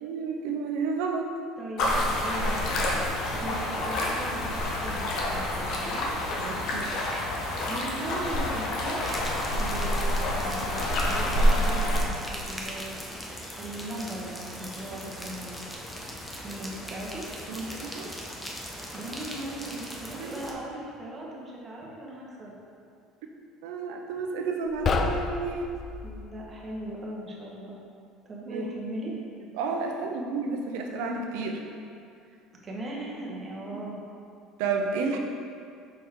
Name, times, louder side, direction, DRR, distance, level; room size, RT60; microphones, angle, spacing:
voice 1, 0.0-1.3 6.4-6.9 17.5-18.1 20.1-20.3 23.6-25.7 28.5-28.7 29.5-31.6 33.7-33.8 34.6-35.2, right 4 dB, 80° right, 2 dB, 0.6 m, -31 dB
voice 2, 1.6-3.0 3.3-6.1 7.7-9.1 9.5-15.6 16.4-17.3 18.9-22.5 26.0-27.8 28.2-29.2 32.6-34.0, right 1 dB, 30° right, -3 dB, 1.3 m, -38 dB
sound 1, 1.8-12.0, left 1 dB, 60° left, 1.0 m, -27 dB
sound 2, 9.0-20.5, equal, 5° left, 0.8 m, -40 dB
sound 3, 24.7-26.3, left 4 dB, 35° left, 0.4 m, -29 dB
5.9 x 4.3 x 3.7 m, 2.5 s
supercardioid pair, 110°, 0 cm